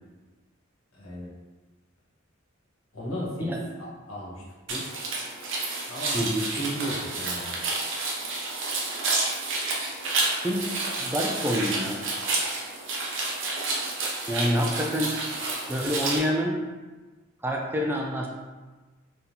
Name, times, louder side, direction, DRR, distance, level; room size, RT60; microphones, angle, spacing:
voice 1, 0.9-1.3 2.9-4.4 4.7-4.8 5.9-6.3 6.6-7.6, equal, 85° left, -6 dB, 1.5 m, -34 dB
sound 1, 4.7-16.2, right 3 dB, 60° right, 0.8 m, -30 dB
voice 2, 6.1-6.5 10.4-12.0 14.3-15.2 15.7-16.6 17.4-18.3, equal, 10° right, 0 dB, 0.3 m, -27 dB
4.0 x 3.5 x 2.9 m, 1.2 s
head